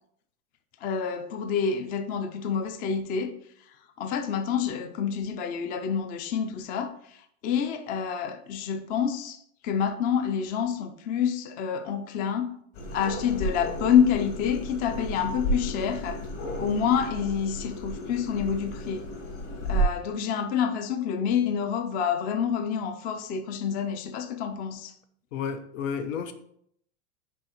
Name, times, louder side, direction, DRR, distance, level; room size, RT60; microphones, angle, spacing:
voice 1, 0.8-3.3 4.0-12.5 12.9-16.2 16.6-19.1 19.7-24.9, left 7 dB, 25° left, 0.4 m, -28 dB
sound 1, 12.7-19.8, right 1 dB, 55° left, 2.8 m, -33 dB
voice 2, 25.3-26.3, left 6 dB, 80° left, 1.0 m, -31 dB
6.3 x 4.9 x 4.3 m
supercardioid pair, 145°, 38 cm